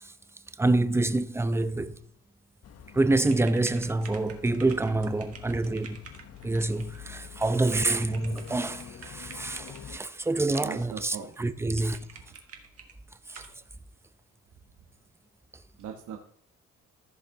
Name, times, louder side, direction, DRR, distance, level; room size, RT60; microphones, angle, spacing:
voice 1, 0.6-2.0 2.9-6.0 6.4-12.1 13.3-13.4, right 2 dB, 10° right, 0.6 m, -27 dB
sound 1, 2.6-10.0, left 8 dB, 55° left, 0.8 m, -47 dB
sound 2, 3.2-9.9 10.5-11.1 11.3-11.4 11.7-12.9 13.3-13.6, right 5 dB, 50° right, 1.8 m, -49 dB
voice 2, 10.6-11.4 11.7-11.9 15.8-16.2, right 8 dB, 80° right, 1.2 m, -40 dB
14.5 x 5.6 x 3.7 m
cardioid pair, 90°, 30 cm